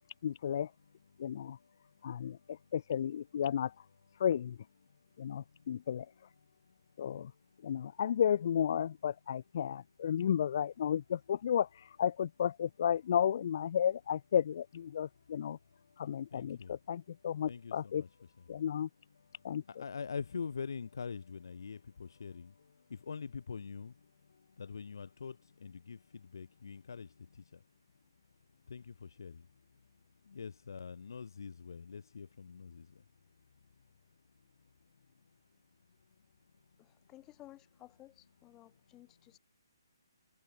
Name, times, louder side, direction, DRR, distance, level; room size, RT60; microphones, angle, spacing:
voice 1, 0.2-0.7 1.2-1.6 2.0-3.8 4.2-4.6 5.2-6.1 7.0-7.3 7.6-15.6 16.0-18.0 18.5-18.9 19.4-19.8, left 9 dB, 50° left, 0.4 m, -33 dB
voice 2, 1.1-2.7 4.8-8.0 14.9-18.1 18.4-18.7 19.1-37.1 38.6-39.4, left 5 dB, 65° left, 2.0 m, -47 dB
voice 3, 36.8-39.4, left 16 dB, 20° left, 2.0 m, -56 dB
figure-of-eight pair, 140°, 2 cm